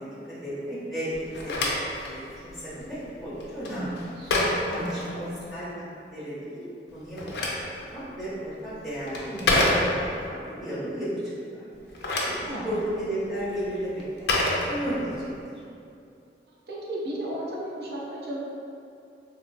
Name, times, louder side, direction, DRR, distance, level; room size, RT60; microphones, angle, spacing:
voice 1, 0.0-1.7 2.0-4.0 4.7-5.2 5.5-6.6 6.9-7.5 7.9-11.3 11.9-12.4 12.6-14.3 14.7-15.3, equal, ahead, -13 dB, 0.7 m, -34 dB
Telephone, 1.1-5.7 6.9-10.3 11.7-15.3, left 2 dB, 75° left, 0.4 m, -29 dB
voice 2, 3.7-5.4 9.3-9.7 12.5-12.6 16.7-18.4, right 1 dB, 70° right, -6 dB, 0.5 m, -35 dB
2.9 x 2.0 x 2.5 m, 2.5 s
head